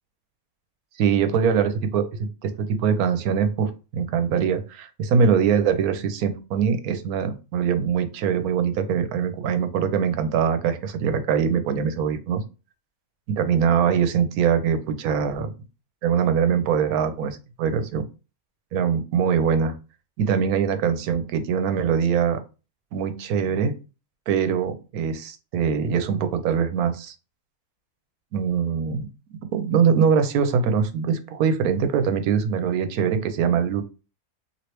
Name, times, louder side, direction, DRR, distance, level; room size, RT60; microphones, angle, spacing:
voice 1, 1.0-12.4 13.3-15.5 16.0-18.1 18.7-19.8 20.2-22.4 22.9-23.7 24.3-27.1 28.3-29.1 29.5-33.8, right 7 dB, 90° right, 9 dB, 1.1 m, -23 dB
3.1 x 2.7 x 2.9 m, 0.32 s
omnidirectional pair, 1.5 m